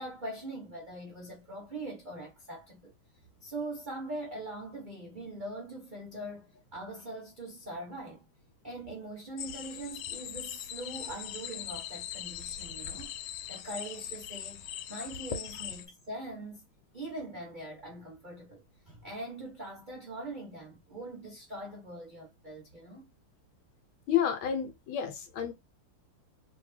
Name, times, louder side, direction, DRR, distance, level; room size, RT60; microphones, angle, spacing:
voice 1, 0.0-2.9 3.4-8.3 8.6-16.6 16.9-23.1, right 1 dB, 50° right, 0.5 m, -42 dB
sound 1, 9.4-15.9, left 10 dB, 90° left, 1.5 m, -40 dB
voice 2, 24.1-25.5, left 9 dB, 70° left, 1.5 m, -30 dB
3.1 x 2.9 x 3.2 m
omnidirectional pair, 2.4 m